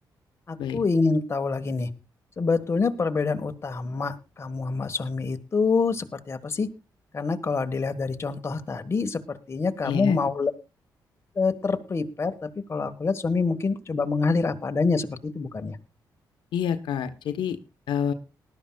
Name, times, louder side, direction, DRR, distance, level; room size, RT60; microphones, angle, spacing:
voice 1, 0.5-1.9 2.4-6.7 7.1-10.5 11.3-15.8, left 4 dB, 35° left, 6 dB, 1.4 m, -26 dB
voice 2, 9.9-10.2 16.5-17.6 17.9-18.1, left 8 dB, 90° left, 8 dB, 1.0 m, -27 dB
19.5 x 12.0 x 2.3 m, 0.29 s
cardioid pair, 100°, 8 cm